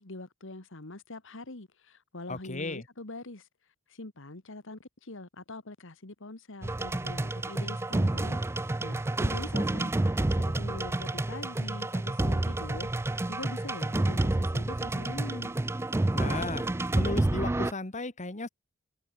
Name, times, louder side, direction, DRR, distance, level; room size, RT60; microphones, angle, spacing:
voice 1, 0.0-3.4 3.9-12.9 13.3-15.5, left 2 dB, 60° left, 1.8 m, -43 dB
voice 2, 2.3-2.8 16.1-18.5, left 2 dB, 35° left, 1.9 m, -35 dB
sound 1, 6.6-17.7, right 2 dB, 10° right, 0.4 m, -29 dB
head